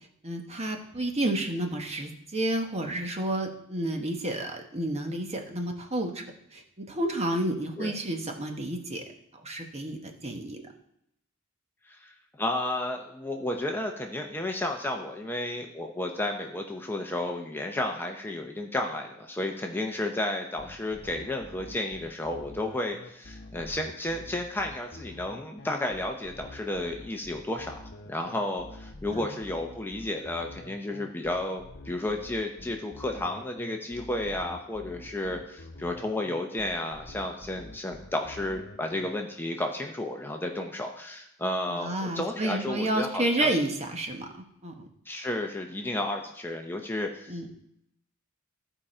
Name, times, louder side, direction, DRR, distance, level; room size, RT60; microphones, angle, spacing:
voice 1, 0.2-6.2 6.5-9.0 9.4-10.6 29.1-29.3 41.7-44.3 44.6-44.9 47.3-47.5, right 1 dB, 30° right, 4 dB, 1.2 m, -30 dB
voice 2, 12.4-43.6 45.1-47.5, left 1 dB, 10° left, 2 dB, 0.7 m, -32 dB
sound 1, 20.6-39.1, left 2 dB, 55° left, 1.0 m, -46 dB
14.5 x 4.9 x 4.3 m, 0.76 s
head